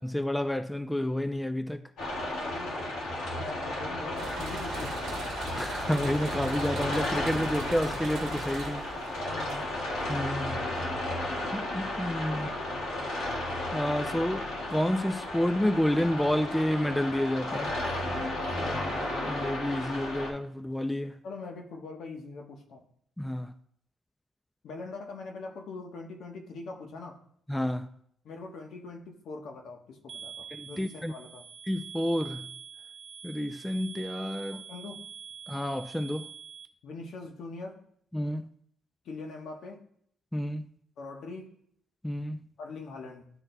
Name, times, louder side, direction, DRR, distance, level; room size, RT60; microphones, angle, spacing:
voice 1, 0.0-1.9 5.5-8.9 10.1-10.7 11.5-12.5 13.7-17.8 19.2-21.2 23.2-23.5 27.5-27.9 30.5-31.1 31.7-32.5 33.2-34.7 35.5-36.3 38.1-38.5 40.3-40.7 42.0-42.5, left 1 dB, 5° left, 0.4 m, -30 dB
sound 1, 2.0-20.3, left 1 dB, 90° left, 1.5 m, -33 dB
voice 2, 2.4-2.8 3.3-5.2 9.3-9.7 12.3-12.6 18.3-18.9 21.2-22.8 24.6-27.2 28.2-31.5 34.5-35.0 36.8-37.8 39.0-39.8 41.0-41.5 42.6-43.3, left 3 dB, 70° left, 1.1 m, -42 dB
sound 2, 4.2-10.0, right 3 dB, 80° right, 0.9 m, -40 dB
sound 3, 30.1-36.7, right 7 dB, 50° right, 0.6 m, -45 dB
11.0 x 3.9 x 2.2 m
cardioid pair, 90°, 0 cm